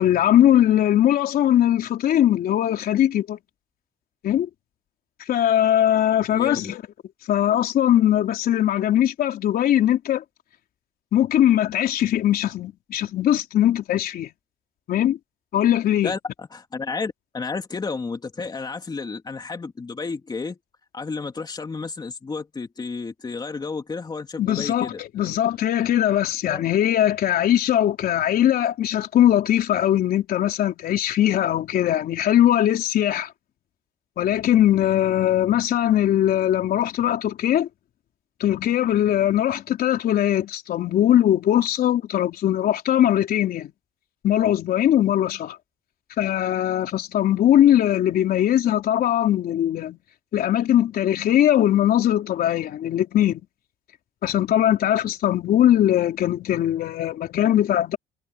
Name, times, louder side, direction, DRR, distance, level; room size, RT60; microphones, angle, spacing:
voice 1, 0.0-3.4 4.2-4.5 5.3-6.8 7.3-10.2 11.1-14.3 14.9-15.2 15.5-16.1 24.4-33.3 34.2-37.7 38.4-43.7 44.2-45.6 46.2-50.0 50.3-53.4 54.2-58.0, left 11 dB, 60° left, 3.7 m, -20 dB
voice 2, 6.3-6.7 16.0-20.6 20.9-25.3 26.5-26.7, left 4 dB, 25° left, 3.1 m, -32 dB
cardioid pair, 110°, 17 cm